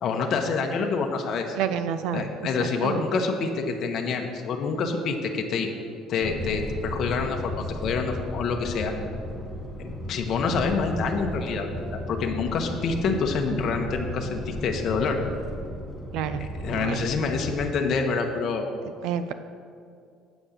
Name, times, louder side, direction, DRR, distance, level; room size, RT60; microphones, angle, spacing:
voice 1, 0.0-1.6 2.1-5.7 6.1-8.9 9.8-15.2 16.4-18.7, left 4 dB, 50° left, 3 dB, 0.9 m, -27 dB
voice 2, 1.6-2.3 2.6-3.0 16.1-16.5 16.7-17.1 19.0-19.3, right 8 dB, 75° right, 10 dB, 0.4 m, -29 dB
sound 1, 6.2-17.7, left 1 dB, ahead, 1.1 m, -34 dB
8.0 x 5.2 x 7.3 m, 2.4 s
cardioid pair, 130°, 0 cm